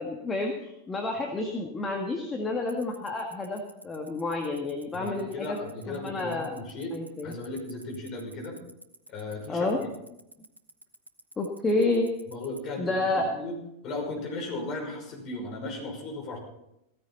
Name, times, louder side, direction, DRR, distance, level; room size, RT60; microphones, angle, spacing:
voice 1, 0.0-5.6 5.9-6.6 6.9-7.3 9.5-9.8 11.4-12.1 12.8-13.3, left 2 dB, 15° left, 2 dB, 1.7 m, -29 dB
Tick-tock, 2.7-12.6, right 2 dB, 80° right, 1.1 m, -46 dB
voice 2, 4.9-7.0 7.2-8.6 9.1-9.9 12.3-13.5 13.8-16.4, left 2 dB, 35° left, 0 dB, 5.8 m, -36 dB
16.0 x 14.5 x 4.2 m, 0.85 s
figure-of-eight pair, 90°, 0 cm